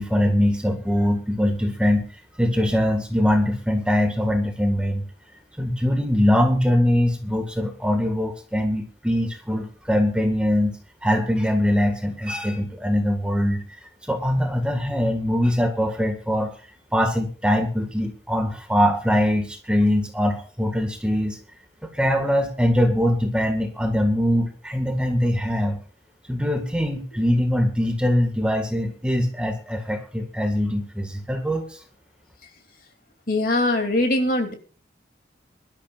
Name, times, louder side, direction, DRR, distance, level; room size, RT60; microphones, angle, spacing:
voice 1, 0.0-2.0 2.4-5.1 5.6-13.6 14.1-16.5 16.9-21.4 21.9-25.8 26.3-31.8, equal, 5° right, 3 dB, 1.7 m, -22 dB
voice 2, 33.3-34.5, left 1 dB, 50° left, 4 dB, 2.8 m, -21 dB
23.5 x 12.5 x 2.5 m, 0.38 s
head